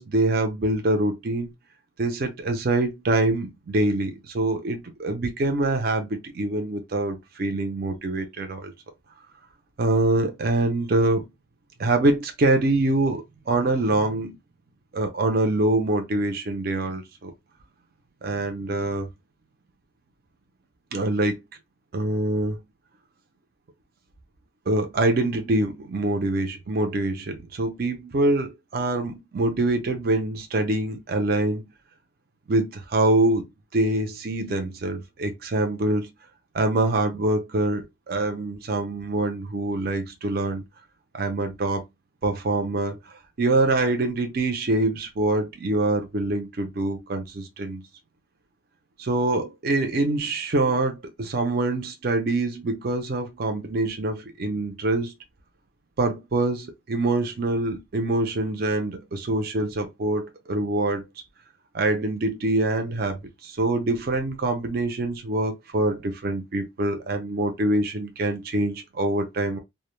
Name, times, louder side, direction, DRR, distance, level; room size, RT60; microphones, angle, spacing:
voice 1, 0.0-1.5 2.0-8.7 9.8-11.3 11.8-14.4 14.9-17.3 18.2-19.1 20.9-21.4 21.9-22.6 24.7-31.6 32.5-36.1 36.5-40.6 41.1-41.8 42.2-43.0 43.4-47.8 49.0-55.1 56.0-61.0 61.7-69.6, right 2 dB, 50° right, 0.5 m, -25 dB
2.1 x 2.1 x 3.0 m
head